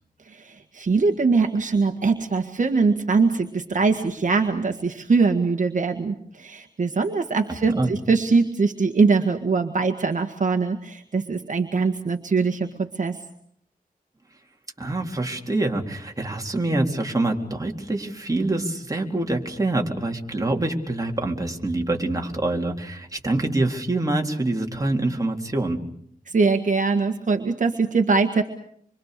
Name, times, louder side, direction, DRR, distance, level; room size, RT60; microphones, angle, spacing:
voice 1, 0.3-13.2 26.3-28.4, right 4 dB, 55° right, 5 dB, 1.8 m, -22 dB
voice 2, 14.8-25.8, right 2 dB, 20° right, 1 dB, 3.9 m, -25 dB
26.5 x 25.0 x 6.8 m, 0.66 s
wide cardioid pair, 120°, 15 cm